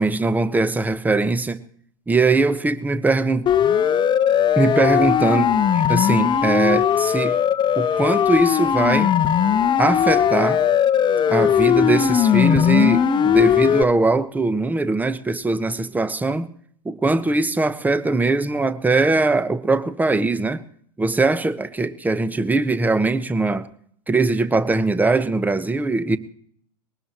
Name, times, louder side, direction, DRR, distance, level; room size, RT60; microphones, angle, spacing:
voice 1, 0.0-1.6 2.1-3.5 4.6-7.4 7.8-9.1 9.8-10.6 11.3-16.5 16.8-20.6 21.0-23.7 24.1-26.2, right 3 dB, 10° right, 1.1 m, -21 dB
Siren, 3.5-13.8, left 9 dB, 25° left, 1.0 m, -18 dB
22.0 x 19.0 x 3.0 m
hypercardioid pair, 95°, 20 cm